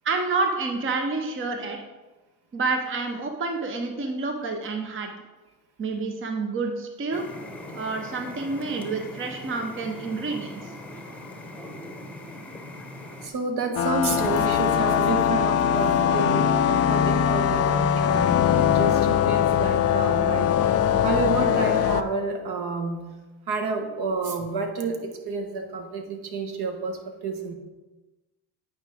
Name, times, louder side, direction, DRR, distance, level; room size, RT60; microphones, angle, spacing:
voice 1, 0.0-1.8 2.5-5.1 5.8-7.2 7.7-10.7, right 3 dB, 25° right, 4 dB, 0.9 m, -28 dB
sound 1, 7.1-13.3, left 1 dB, 5° left, 1.1 m, -40 dB
voice 2, 13.2-23.0 23.5-27.5, right 4 dB, 50° right, 5 dB, 1.4 m, -30 dB
sound 2, 13.8-22.0, left 9 dB, 30° left, 0.5 m, -21 dB
9.1 x 4.9 x 3.5 m, 1.1 s
hypercardioid pair, 65°, 49 cm